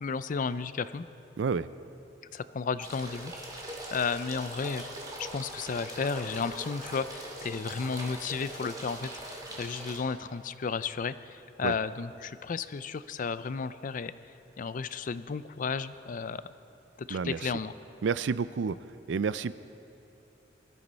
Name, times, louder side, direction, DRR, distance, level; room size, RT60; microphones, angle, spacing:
voice 1, 0.0-1.1 2.3-4.9 5.2-14.1 14.6-16.4 17.0-17.7, left 5 dB, 45° left, 14 dB, 0.4 m, -33 dB
voice 2, 1.4-1.7 11.6-11.7 17.1-17.5 18.0-18.8 19.1-19.6, right 5 dB, 70° right, 16 dB, 0.4 m, -29 dB
sound 1, 2.8-10.0, right 1 dB, 20° right, 2.2 m, -41 dB
20.5 x 13.5 x 4.1 m, 2.8 s
head